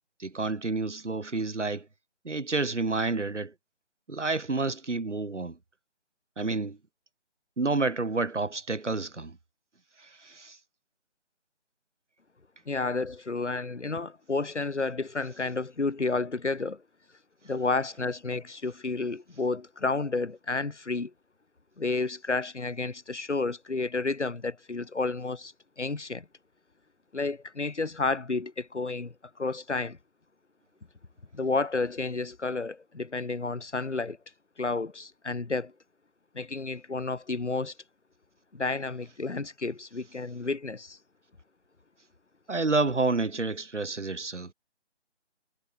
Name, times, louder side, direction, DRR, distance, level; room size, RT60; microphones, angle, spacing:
voice 1, 0.2-1.9 2.2-3.5 4.1-5.6 6.4-6.8 7.6-9.4 10.0-10.6 42.5-44.5, right 3 dB, 90° right, 5.6 m, -29 dB
voice 2, 12.7-16.8 17.4-21.1 21.8-26.3 27.1-30.0 31.3-34.2 34.6-35.7 36.3-37.7 38.5-41.0, left 3 dB, 80° left, 5.3 m, -31 dB
figure-of-eight pair, 170°, 35 cm